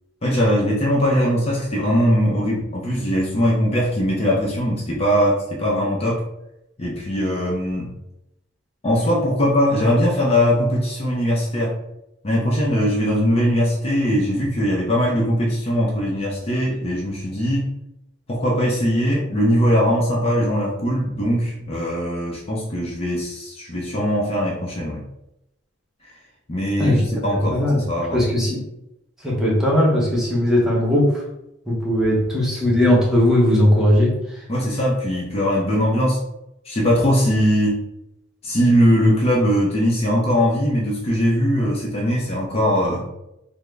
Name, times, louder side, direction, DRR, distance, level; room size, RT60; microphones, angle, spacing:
voice 1, 0.2-6.2 6.8-7.9 8.8-11.7 12.2-17.7 18.3-25.0 26.5-28.2 34.5-36.2 36.7-37.8 38.4-43.1, equal, 30° left, -3 dB, 0.6 m, -20 dB
voice 2, 27.3-27.8 28.1-28.6 29.2-31.2 31.7-34.2, left 1 dB, 5° right, -6 dB, 0.8 m, -18 dB
3.5 x 2.0 x 3.3 m, 0.86 s
head